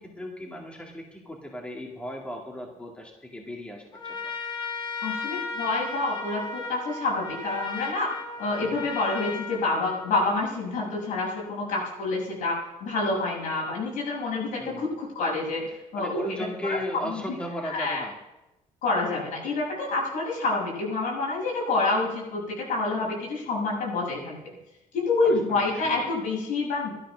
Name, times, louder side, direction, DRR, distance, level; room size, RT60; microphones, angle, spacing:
voice 1, 0.0-4.3 8.6-8.9 14.6-14.9 16.0-18.1 25.2-26.0, left 1 dB, 10° left, -1 dB, 2.0 m, -36 dB
Trumpet, 3.9-10.5, left 4 dB, 35° left, 2.8 m, -35 dB
voice 2, 5.0-16.3 16.6-17.2 17.6-18.0 18.8-24.4 24.9-26.9, left 3 dB, 75° left, -3 dB, 7.2 m, -28 dB
13.0 x 12.5 x 6.2 m, 0.97 s
cardioid pair, 155°, 14 cm